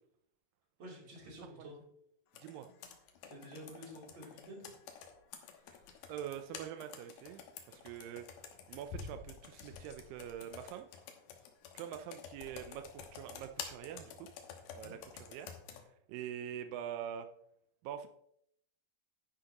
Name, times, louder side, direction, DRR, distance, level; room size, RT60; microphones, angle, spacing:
voice 1, 0.8-1.8 3.3-4.7 5.4-5.9 14.8-15.0, equal, 30° right, -3 dB, 3.5 m, -51 dB
Computer keyboard, 2.3-15.8, left 7 dB, 75° left, 2.8 m, -50 dB
voice 2, 6.1-8.3 8.7-10.9 11.7-14.3 14.7-15.5 16.1-17.3 17.8-18.1, right 10 dB, 90° right, 7 dB, 1.9 m, -44 dB
10.5 x 10.0 x 2.9 m, 0.73 s
omnidirectional pair, 4.7 m